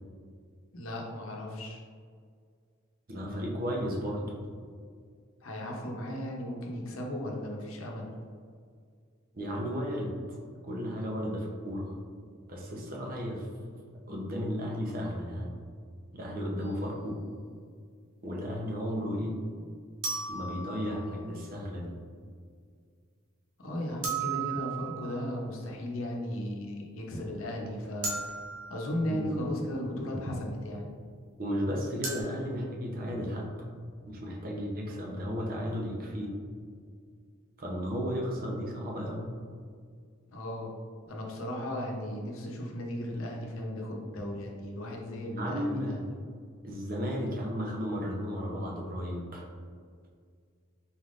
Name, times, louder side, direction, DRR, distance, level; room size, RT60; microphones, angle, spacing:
voice 1, 0.7-1.8 5.4-8.1 23.6-28.2 28.7-30.9 40.3-40.7 41.1-46.2, left 1 dB, 85° left, 0 dB, 0.8 m, -36 dB
voice 2, 3.1-4.3 9.3-10.1 10.6-11.9 12.5-13.5 14.1-15.5 16.1-17.2 18.2-19.3 20.3-21.9 29.1-29.3 31.4-33.5 34.1-36.3 37.6-39.2 45.3-46.0 46.6-49.4, equal, 45° right, -2 dB, 0.7 m, -34 dB
sound 1, 16.6-16.7 20.0-21.3 24.0-25.4 28.0-29.3 32.0-32.2, right 5 dB, 90° right, 1.0 m, -36 dB
4.3 x 3.6 x 2.5 m, 2.1 s
head